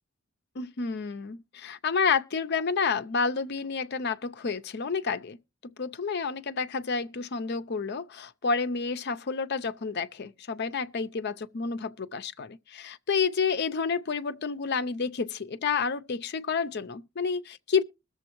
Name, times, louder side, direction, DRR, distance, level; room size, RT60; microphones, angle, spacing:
voice 1, 0.6-5.4 5.6-17.8, left 5 dB, 55° left, 0.6 m, -30 dB
21.0 x 7.0 x 3.0 m
head